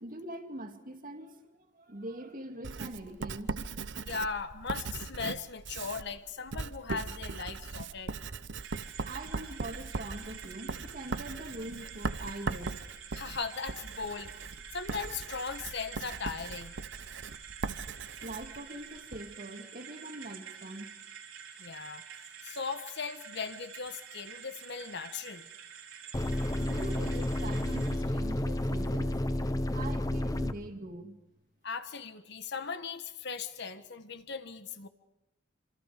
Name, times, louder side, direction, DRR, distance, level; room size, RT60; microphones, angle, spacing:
voice 1, 0.0-3.6 9.0-12.8 18.2-20.9 26.1-26.3 26.6-29.4 29.7-31.2, right 1 dB, 45° right, 2.3 m, -43 dB
Writing, 2.6-19.3, right 4 dB, 60° right, 0.9 m, -39 dB
voice 2, 4.0-8.1 13.1-16.8 21.6-22.0 22.4-25.5 31.6-34.9, left 5 dB, 60° left, 1.4 m, -38 dB
sound 1, 8.6-28.0, right 7 dB, 80° right, 4.2 m, -48 dB
sound 2, 26.1-30.5, left 1 dB, 20° left, 1.0 m, -31 dB
27.0 x 27.0 x 5.1 m
head